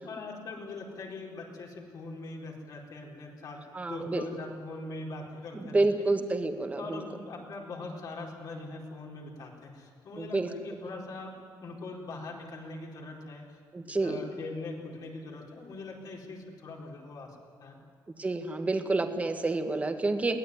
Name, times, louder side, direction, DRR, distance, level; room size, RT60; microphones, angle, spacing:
voice 1, 0.0-3.6 3.9-6.1 6.8-11.3 11.6-13.6 13.9-17.8, left 3 dB, 60° left, -1 dB, 4.6 m, -42 dB
voice 2, 3.7-4.3 5.5-7.0 10.2-10.5 13.7-14.2 18.2-20.4, right 3 dB, 20° right, 6 dB, 1.7 m, -29 dB
23.0 x 17.5 x 9.6 m, 2.4 s
cardioid pair, 150°, 7 cm